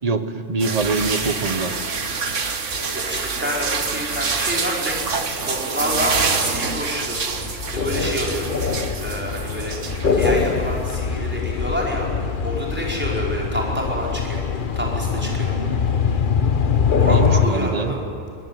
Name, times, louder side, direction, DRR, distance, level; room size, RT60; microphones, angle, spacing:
voice 1, 0.0-1.8 17.1-18.0, right 3 dB, 30° right, 10 dB, 1.2 m, -24 dB
sound 1, 0.6-11.0, right 4 dB, 75° right, 1.8 m, -26 dB
voice 2, 2.9-5.0 5.4-8.5 9.0-12.1 12.4-14.5 14.7-15.8 17.0-18.0, equal, 10° right, -3 dB, 5.2 m, -28 dB
sound 2, 6.9-17.5, left 6 dB, 45° left, 1.2 m, -23 dB
22.0 x 22.0 x 9.3 m, 2.4 s
omnidirectional pair, 1.3 m